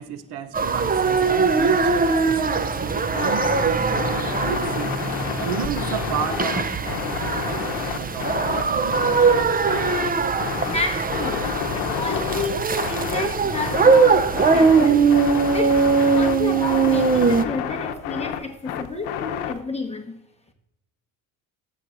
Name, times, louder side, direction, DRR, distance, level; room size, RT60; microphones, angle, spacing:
voice 1, 0.0-5.0 5.4-9.0, right 9 dB, 60° right, 0.8 m, -32 dB
sound 1, 0.5-17.4, right 5 dB, 20° right, 0.6 m, -21 dB
sound 2, 3.1-19.6, left 9 dB, 75° left, 0.9 m, -30 dB
voice 2, 10.7-11.5 11.7-15.1 15.5-20.2, left 3 dB, 15° left, 1.2 m, -30 dB
14.0 x 7.8 x 2.6 m
supercardioid pair, 90°, 46 cm